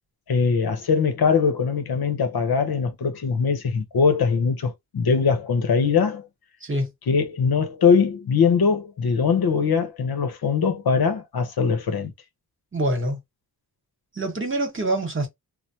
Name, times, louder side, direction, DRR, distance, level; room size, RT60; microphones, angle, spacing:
voice 1, 0.3-6.3 7.1-12.1, left 5 dB, 65° left, 0.8 m, -21 dB
voice 2, 12.7-13.2 14.1-15.3, right 1 dB, 30° right, 1.2 m, -25 dB
3.2 x 2.1 x 2.7 m
wide cardioid pair, 90°, 40 cm